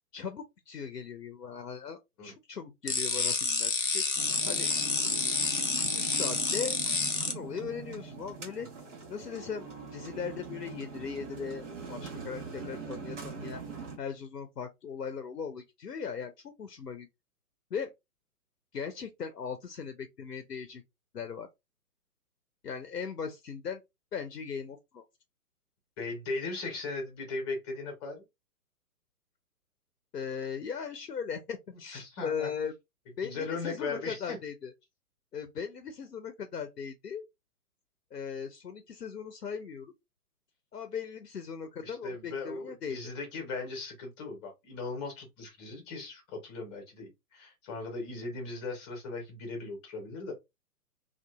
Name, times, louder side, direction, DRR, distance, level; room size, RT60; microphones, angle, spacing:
voice 1, 0.1-4.0 4.5-4.7 5.5-6.8 7.3-8.7 9.1-9.7 9.9-13.6 14.0-17.1 17.7-17.9 18.7-20.8 21.1-21.5 22.6-23.8 24.1-25.0 30.1-32.7 33.2-34.7 35.3-37.2 38.1-39.9 40.7-43.0, left 6 dB, 85° left, 0.6 m, -38 dB
sound 1, 2.9-7.3, left 4 dB, 35° left, 0.4 m, -29 dB
sound 2, 4.2-14.0, right 5 dB, 50° right, 1.2 m, -42 dB
voice 2, 26.0-28.2 31.9-32.5 33.2-34.4 41.8-50.3, left 3 dB, 20° left, 0.8 m, -38 dB
2.7 x 2.3 x 2.2 m
figure-of-eight pair, 125°, 46 cm